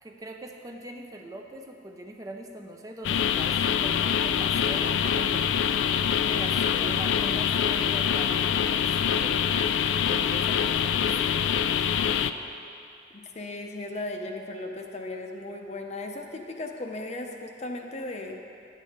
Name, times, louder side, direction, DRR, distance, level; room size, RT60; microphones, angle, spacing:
voice 1, 0.0-5.7 6.3-9.5 10.1-11.9, right 1 dB, 20° right, 2 dB, 0.4 m, -42 dB
sound 1, 3.0-12.3, left 8 dB, 70° left, 0.3 m, -25 dB
voice 2, 6.3-6.9 13.1-18.4, left 2 dB, 35° left, 3 dB, 0.7 m, -36 dB
10.5 x 8.2 x 4.2 m, 2.6 s
head